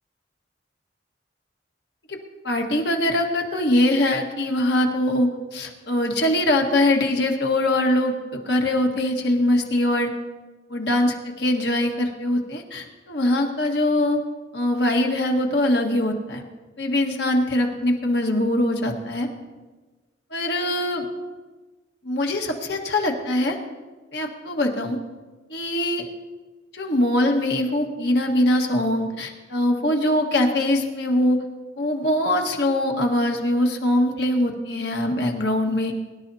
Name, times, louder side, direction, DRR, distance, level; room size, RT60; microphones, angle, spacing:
voice 1, 2.4-10.1 10.7-14.2 14.5-16.4 16.8-19.3 20.3-21.1 22.0-23.6 24.1-25.0 25.5-26.0 26.7-31.4 31.8-35.9, left 1 dB, 60° left, 2 dB, 1.6 m, -22 dB
23.0 x 11.5 x 2.8 m, 1.3 s
head